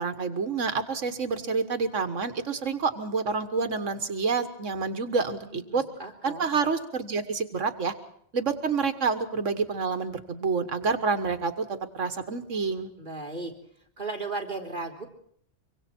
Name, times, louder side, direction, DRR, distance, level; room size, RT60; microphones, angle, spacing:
voice 1, 0.0-5.8 6.2-7.9 8.3-12.9, right 4 dB, 85° right, 9 dB, 1.8 m, -28 dB
voice 2, 5.5-6.5 13.0-13.5 14.0-15.1, right 3 dB, 40° right, 2 dB, 3.9 m, -36 dB
25.0 x 24.5 x 4.5 m, 0.65 s
omnidirectional pair, 1.3 m